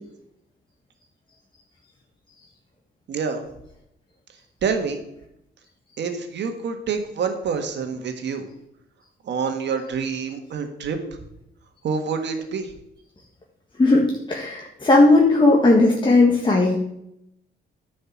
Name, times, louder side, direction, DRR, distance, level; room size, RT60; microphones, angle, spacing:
voice 1, 3.1-3.5 4.6-5.0 6.0-8.4 9.2-11.0 11.8-12.7, right 5 dB, 60° right, 6 dB, 1.7 m, -27 dB
voice 2, 13.8-16.8, left 2 dB, 25° left, -1 dB, 1.6 m, -16 dB
10.0 x 5.3 x 7.4 m, 0.81 s
cardioid pair, 90°, 20 cm